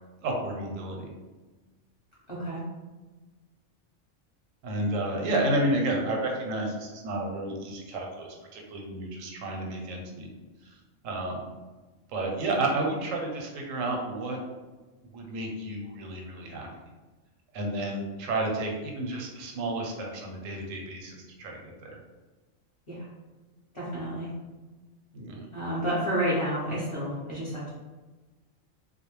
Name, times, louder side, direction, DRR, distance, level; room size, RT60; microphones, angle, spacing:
voice 1, 0.2-1.1 4.6-10.3 10.6-10.8 11.0-11.4 12.1-14.4 15.1-16.7 17.5-22.0 25.1-25.4, right 2 dB, 85° right, 1 dB, 1.0 m, -31 dB
voice 2, 2.3-2.6 22.9-23.0 23.7-24.3 25.5-27.7, equal, 30° left, -9 dB, 0.7 m, -30 dB
2.2 x 2.0 x 3.0 m, 1.2 s
omnidirectional pair, 1.3 m